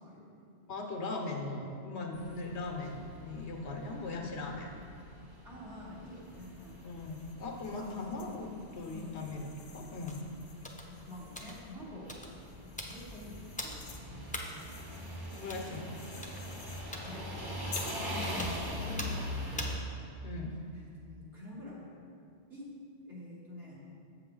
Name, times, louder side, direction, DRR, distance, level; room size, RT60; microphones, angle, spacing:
voice 1, 0.0-0.5 5.4-7.1 7.8-8.3 8.9-9.2 10.9-14.7 17.0-19.8 20.7-22.0 22.5-22.6 23.1-23.9, left 1 dB, 65° right, -7 dB, 2.2 m, -47 dB
voice 2, 0.7-4.7 6.8-10.2 15.3-16.0 20.2-20.6, left 3 dB, 90° left, 2 dB, 1.2 m, -39 dB
sound 1, 2.1-19.8, equal, 25° right, 0.9 m, -43 dB
sound 2, 6.2-11.8 12.4-16.9 17.7-18.1, left 5 dB, 60° left, 0.9 m, -52 dB
sound 3, 10.1-10.2 10.6-10.9 11.4-11.6 12.1-12.4 12.8-13.0 13.6-13.8 14.3-14.5 15.5-15.7 16.2-16.4 16.9-17.1 17.8-17.9 18.4-18.6 19.0-19.2 19.6-19.8 20.3-20.6, left 1 dB, 10° left, 0.5 m, -41 dB
7.7 x 6.9 x 3.8 m, 2.5 s
omnidirectional pair, 1.1 m